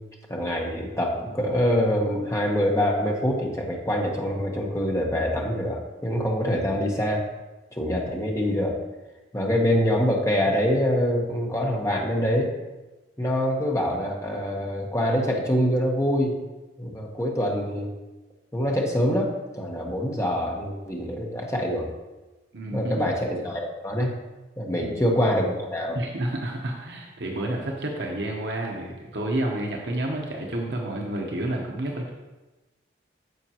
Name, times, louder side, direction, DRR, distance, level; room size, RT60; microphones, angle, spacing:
voice 1, 0.3-7.2 7.7-8.8 9.3-12.5 13.2-16.4 16.8-17.9 18.5-21.9 22.7-24.1 24.6-26.0, equal, 15° left, -1 dB, 1.1 m, -25 dB
voice 2, 22.5-23.1 24.8-25.0 25.9-32.1, right 1 dB, 65° right, -1 dB, 0.9 m, -30 dB
9.3 x 6.9 x 2.9 m, 1.1 s
head